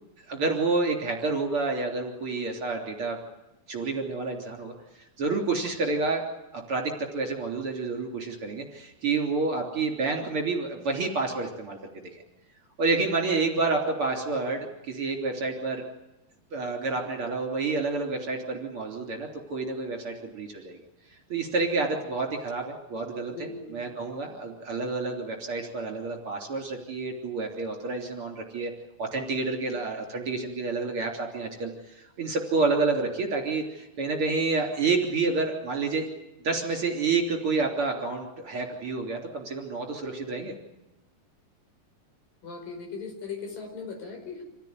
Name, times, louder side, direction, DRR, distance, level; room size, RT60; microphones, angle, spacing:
voice 1, 0.3-3.2 3.7-4.7 5.2-6.2 6.5-11.8 12.8-15.8 16.5-20.8 21.3-28.7 29.0-36.1 36.4-40.5, right 3 dB, 35° right, 2 dB, 3.9 m, -29 dB
voice 2, 23.3-23.8 42.4-44.4, left 4 dB, 60° left, 3 dB, 6.7 m, -38 dB
27.0 x 16.5 x 9.6 m, 0.95 s
omnidirectional pair, 4.4 m